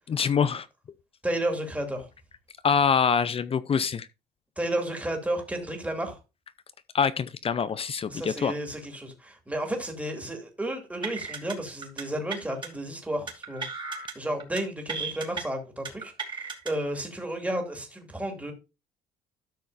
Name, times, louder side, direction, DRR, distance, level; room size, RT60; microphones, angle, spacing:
voice 1, 0.1-0.7 2.6-4.1 6.9-8.5, left 6 dB, 35° left, 0.5 m, -25 dB
voice 2, 1.2-2.1 4.6-6.2 8.1-13.6 14.1-18.5, right 1 dB, 10° right, 2.5 m, -32 dB
sound 1, 11.0-11.5 11.8-12.0 12.3-12.7 13.3-14.1 14.4-14.6 14.9-15.4 15.8-16.7, right 4 dB, 25° right, 2.8 m, -35 dB
13.0 x 6.3 x 2.6 m
cardioid pair, 110°, 17 cm